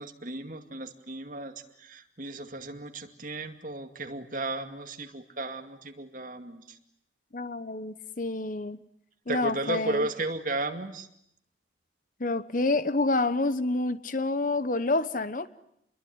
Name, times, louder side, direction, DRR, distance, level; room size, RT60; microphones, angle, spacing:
voice 1, 0.0-6.8 9.3-11.1, right 2 dB, 45° right, 6 dB, 2.3 m, -34 dB
voice 2, 7.3-8.8 9.3-10.1 12.2-15.5, left 2 dB, 45° left, 14 dB, 1.1 m, -28 dB
28.5 x 22.0 x 9.6 m, 0.75 s
head